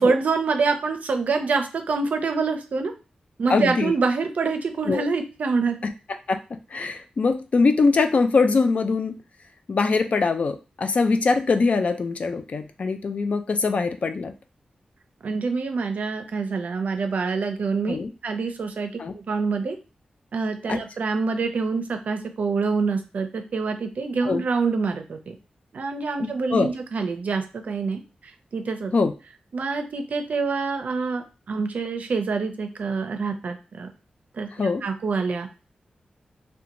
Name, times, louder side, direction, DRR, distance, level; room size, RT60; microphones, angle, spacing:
voice 1, 0.0-2.9 3.4-5.8 15.2-18.0 18.2-19.8 20.3-25.3 25.7-28.9 29.5-33.9 34.3-34.5 34.8-35.5, right 4 dB, 70° right, 6 dB, 0.5 m, -26 dB
voice 2, 3.5-3.9 4.9-5.1 6.3-6.4 6.7-9.1 9.7-14.3 17.9-18.1 19.0-19.1 20.7-20.8 24.2-24.4 26.2-26.7 28.9-29.1 34.6-34.8, left 4 dB, 55° left, 7 dB, 0.3 m, -22 dB
2.5 x 2.2 x 2.9 m, 0.32 s
wide cardioid pair, 90°, 3 cm